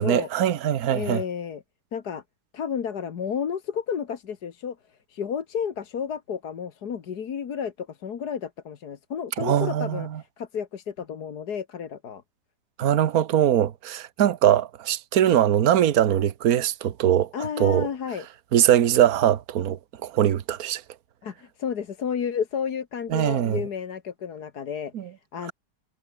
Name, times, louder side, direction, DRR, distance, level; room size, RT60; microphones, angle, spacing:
voice 1, 0.0-1.2 9.4-10.2 12.8-17.3 17.6-17.9 18.5-20.8 23.1-23.6 24.9-25.1, right 10 dB, 60° right, 1.5 m, -22 dB
voice 2, 0.9-1.6 1.9-2.2 2.5-12.2 17.3-18.3 21.2-25.5, left 7 dB, 65° left, 2.0 m, -32 dB
omnidirectional pair, 1.8 m